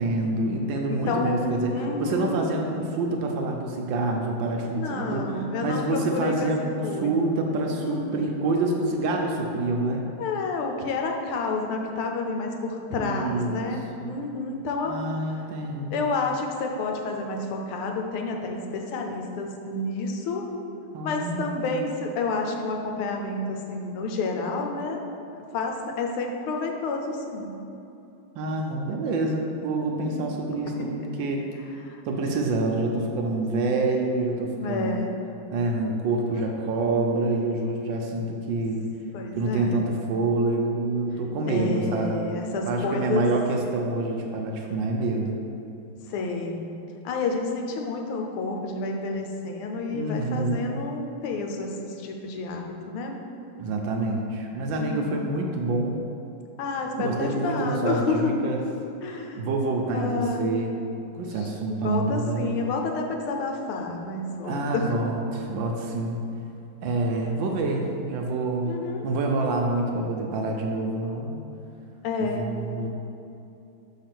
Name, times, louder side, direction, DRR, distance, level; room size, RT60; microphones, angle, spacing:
voice 1, 0.0-1.7 2.0-5.2 5.6-10.0 12.9-13.7 14.0-14.2 14.8-16.1 20.9-21.8 28.4-31.4 32.1-35.0 35.5-38.8 39.3-42.3 42.7-45.4 49.9-50.8 53.6-56.0 57.0-58.6 59.1-60.8 61.1-62.5 64.4-66.2 66.8-68.7 69.0-71.4 72.2-72.9, right 2 dB, 75° right, 1 dB, 1.2 m, -27 dB
voice 2, 0.9-2.4 4.7-7.3 7.7-8.4 10.2-14.9 15.9-20.5 21.0-25.0 25.5-27.6 29.8-30.4 30.7-31.0 31.9-32.0 34.5-35.1 36.4-36.9 39.1-39.8 41.5-43.3 46.1-46.6 47.0-53.1 54.8-55.4 56.6-58.4 59.0-59.4 59.9-60.4 61.4-61.5 61.8-65.0 68.6-69.1 72.0-72.5, left 3 dB, 85° left, 2 dB, 1.6 m, -30 dB
5.6 x 3.6 x 5.8 m, 2.8 s
omnidirectional pair, 2.3 m